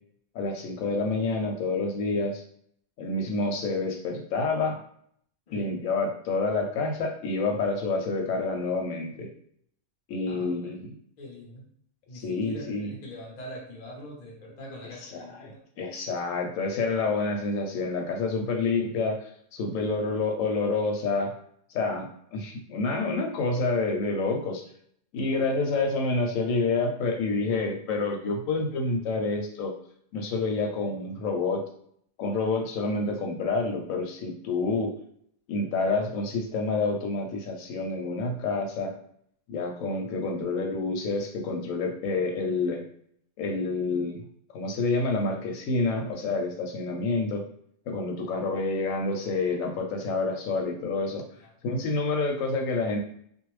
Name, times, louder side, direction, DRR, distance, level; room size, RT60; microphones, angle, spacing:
voice 1, 0.3-2.4 3.0-4.8 5.5-9.3 10.1-10.9 12.1-12.9 15.1-15.2 15.4-21.3 21.7-24.6 25.1-29.7 30.1-31.6 32.2-34.9 35.5-38.9 39.5-42.8 43.4-44.2 44.5-47.4 47.9-51.2 51.6-53.0, left 3 dB, 90° left, 2 dB, 1.0 m, -28 dB
voice 2, 10.3-10.7 11.2-11.7 12.1-15.6 48.1-48.3 51.3-51.5, equal, 40° left, -3 dB, 0.8 m, -43 dB
2.5 x 2.0 x 3.1 m, 0.65 s
omnidirectional pair, 1.3 m